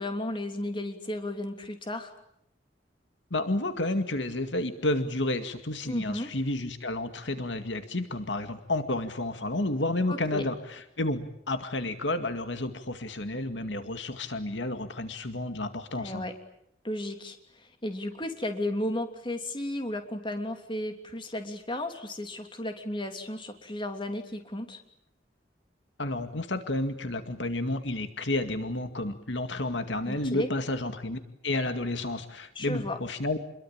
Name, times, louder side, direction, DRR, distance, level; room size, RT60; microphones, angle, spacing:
voice 1, 0.0-2.1 5.8-6.3 10.1-10.4 16.0-16.3 16.8-24.8 30.0-30.5 32.5-33.0, left 1 dB, 25° left, 6 dB, 3.1 m, -34 dB
voice 2, 3.3-16.3 26.0-33.4, left 2 dB, 80° left, 8 dB, 2.2 m, -31 dB
29.0 x 22.5 x 8.8 m, 0.76 s
head